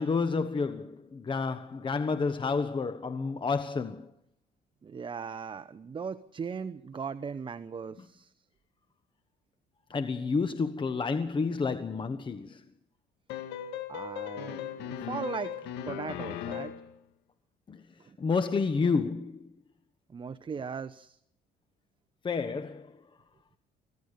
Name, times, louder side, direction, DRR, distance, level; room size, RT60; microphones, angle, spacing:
voice 1, 0.0-4.1 9.9-12.6 17.7-17.8 18.2-19.5 22.2-22.9, left 4 dB, 30° left, 1.3 m, -30 dB
voice 2, 4.8-8.3 13.9-15.6 15.9-16.7 18.0-18.2 20.1-21.2, right 6 dB, 30° right, 1.0 m, -38 dB
sound 1, 13.3-16.9, left 9 dB, 90° left, 2.0 m, -37 dB
25.0 x 16.5 x 6.7 m
cardioid pair, 110°, 17 cm